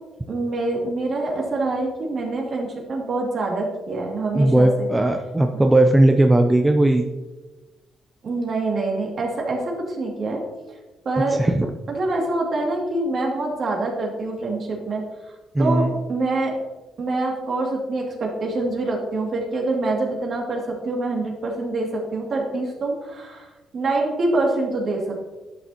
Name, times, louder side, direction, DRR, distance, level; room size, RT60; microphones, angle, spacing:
voice 1, 0.3-4.9 8.2-10.4 10.7-10.8 11.0-11.4 11.9-16.5 17.0-25.3, right 2 dB, 50° right, -1 dB, 2.4 m, -25 dB
voice 2, 4.3-7.0 11.4-11.6 15.5-15.9, right 1 dB, 15° right, 4 dB, 0.6 m, -17 dB
11.0 x 6.6 x 2.9 m, 1.2 s
cardioid pair, 90°, 0 cm